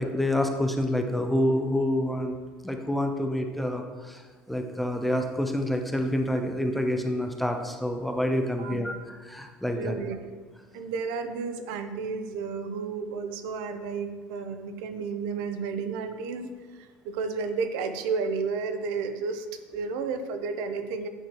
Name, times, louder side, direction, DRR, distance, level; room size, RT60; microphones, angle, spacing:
voice 1, 0.0-2.3 2.6-8.9 9.2-10.0, left 1 dB, ahead, 4 dB, 0.4 m, -27 dB
voice 2, 9.7-10.2 10.7-19.5 19.7-21.1, right 5 dB, 75° right, 8 dB, 0.6 m, -32 dB
8.8 x 4.6 x 2.9 m, 1.4 s
cardioid pair, 160°, 4 cm